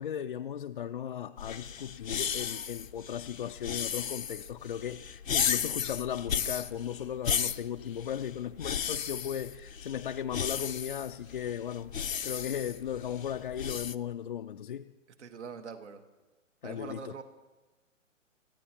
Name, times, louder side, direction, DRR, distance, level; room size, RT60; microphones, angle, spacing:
voice 1, 0.0-11.9 12.2-14.9 16.6-17.2, left 9 dB, 45° left, 0.4 m, -36 dB
sound 1, 1.4-14.0, left 8 dB, 85° left, 0.7 m, -35 dB
voice 2, 15.2-16.0 16.6-17.2, right 6 dB, 60° right, 1.5 m, -43 dB
27.0 x 15.0 x 2.9 m
figure-of-eight pair, 130°, 39 cm